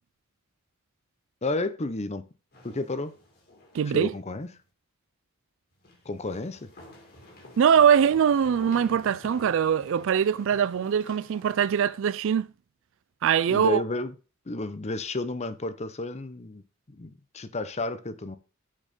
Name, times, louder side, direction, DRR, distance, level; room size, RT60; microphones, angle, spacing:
voice 1, 1.4-2.2 2.6-3.1 3.9-4.5 6.1-6.7 13.5-14.1 14.5-16.6 16.9-18.4, left 2 dB, 30° left, 0.7 m, -32 dB
sound 1, 2.5-4.1 4.3-4.4 5.8-11.9, left 2 dB, 45° left, 2.4 m, -49 dB
voice 2, 3.7-4.1 7.6-12.5 13.2-13.8, right 8 dB, 60° right, 0.3 m, -22 dB
6.4 x 6.2 x 5.2 m
head